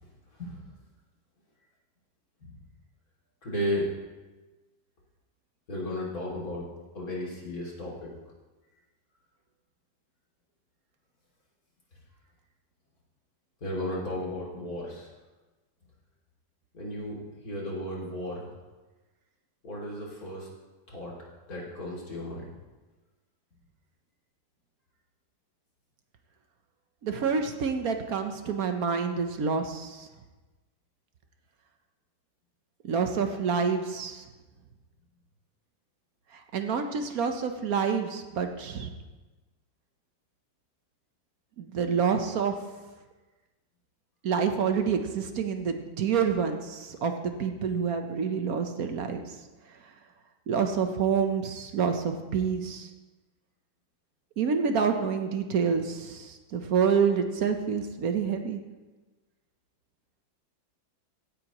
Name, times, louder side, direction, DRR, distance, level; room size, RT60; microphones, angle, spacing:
voice 1, 0.3-0.6 2.4-2.6 3.4-3.9 5.7-6.7 6.9-8.1 13.6-15.1 16.7-18.5 19.6-20.5 20.9-21.2 21.5-22.5, left 1 dB, 50° left, -5 dB, 3.0 m, -34 dB
voice 2, 27.0-30.1 32.8-34.2 36.5-38.9 41.6-42.6 44.2-47.1 47.4-49.2 50.5-52.9 54.4-58.6, right 6 dB, 60° right, 6 dB, 1.1 m, -27 dB
16.5 x 9.3 x 3.0 m, 1.2 s
omnidirectional pair, 2.1 m